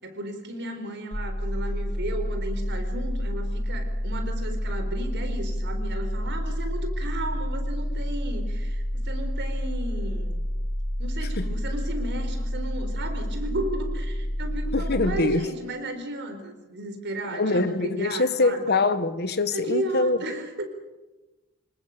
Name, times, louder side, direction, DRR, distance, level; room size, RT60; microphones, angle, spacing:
voice 1, 0.0-10.4 11.0-18.6 19.5-20.7, right 1 dB, 55° right, 4.3 m, -34 dB
sound 1, 1.1-15.2, equal, 30° left, 2.5 m, -29 dB
voice 2, 14.7-15.5 17.3-20.2, left 3 dB, 50° left, 1.5 m, -24 dB
26.5 x 19.5 x 6.8 m
head